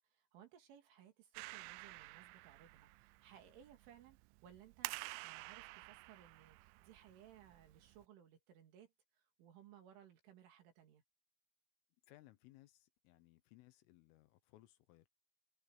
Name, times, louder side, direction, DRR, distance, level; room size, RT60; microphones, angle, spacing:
voice 1, 0.1-8.9 9.1-11.0, right 10 dB, 70° right, 5.5 m, -62 dB
Clapping, 1.3-8.1, right 23 dB, 85° right, 2.8 m, -51 dB
voice 2, 12.1-15.1, left 17 dB, 80° left, 3.6 m, -64 dB
open air
omnidirectional pair, 5.9 m